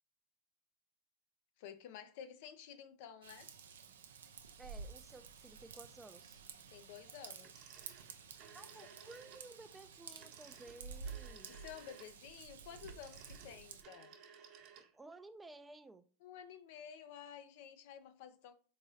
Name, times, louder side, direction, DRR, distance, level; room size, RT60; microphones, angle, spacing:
voice 1, 1.6-3.5 6.7-7.7 11.5-14.2 16.2-18.5, left 9 dB, 65° left, 0.5 m, -52 dB
Raindrop / Vehicle horn car horn honking / Trickle dribble, 3.2-13.8, right 5 dB, 85° right, 0.5 m, -52 dB
voice 2, 4.6-6.4 8.5-11.5 14.8-16.0, right 2 dB, 10° right, 0.4 m, -55 dB
Telephone, 7.4-9.5 10.1-15.2, right 7 dB, 50° right, 0.9 m, -58 dB
3.7 x 3.1 x 2.7 m
hypercardioid pair, 95°, 0 cm